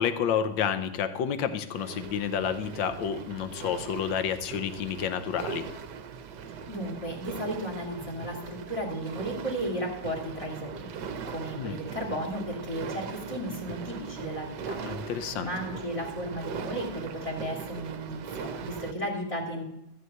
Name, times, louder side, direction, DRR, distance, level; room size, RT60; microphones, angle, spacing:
voice 1, 0.0-5.7 11.5-11.8 14.8-15.5, left 8 dB, 70° left, 10 dB, 1.4 m, -30 dB
sound 1, 1.7-18.9, right 6 dB, 65° right, 1.2 m, -40 dB
voice 2, 6.5-19.6, equal, 15° left, 1 dB, 2.1 m, -35 dB
14.0 x 4.6 x 7.9 m, 0.88 s
omnidirectional pair, 2.3 m